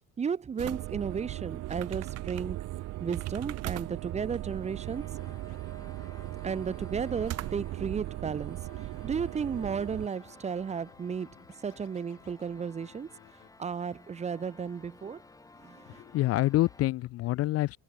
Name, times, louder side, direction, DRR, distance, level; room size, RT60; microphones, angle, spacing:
voice 1, 0.2-2.6 3.0-5.0 6.4-11.4 11.6-13.1 13.6-15.2 15.6-16.0, right 6 dB, 20° right, 0.9 m, -34 dB
sound 1, 0.6-10.1, right 16 dB, 50° right, 0.8 m, -37 dB
sound 2, 1.6-16.9, left 3 dB, 10° left, 2.8 m, -57 dB
Scratching (performance technique), 5.0-13.5, left 22 dB, 85° left, 3.6 m, -59 dB
voice 2, 15.9-17.8, left 17 dB, 50° left, 0.5 m, -27 dB
cardioid pair, 160°, 32 cm